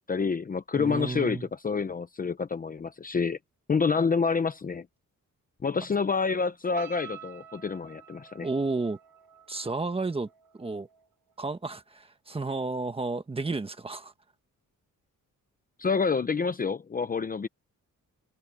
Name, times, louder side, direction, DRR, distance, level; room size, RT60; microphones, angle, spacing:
voice 1, 0.1-3.4 3.7-4.9 5.6-8.5 15.8-17.5, left 5 dB, 25° left, 0.8 m, -28 dB
voice 2, 0.8-1.5 8.4-9.0 9.5-10.3 10.5-10.9 11.4-14.1, right 3 dB, 15° right, 1.4 m, -32 dB
sound 1, 6.7-12.0 12.4-12.7, right 9 dB, 85° right, 6.3 m, -50 dB
wide cardioid pair, 165°, 32 cm